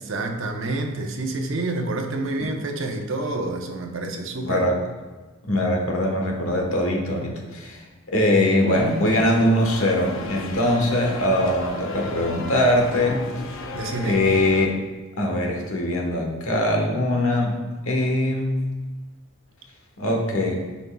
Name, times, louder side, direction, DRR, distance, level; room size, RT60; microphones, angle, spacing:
voice 1, 0.0-4.7 13.7-14.2, right 2 dB, 65° right, 3 dB, 0.8 m, -28 dB
voice 2, 4.4-4.8 5.4-13.3 14.0-14.7 15.2-17.6 17.9-18.7 20.0-20.7, left 1 dB, 85° left, 1 dB, 1.2 m, -22 dB
sound 1, 8.7-14.7, left 2 dB, 70° left, 0.7 m, -35 dB
10.0 x 5.3 x 2.3 m, 1.3 s
head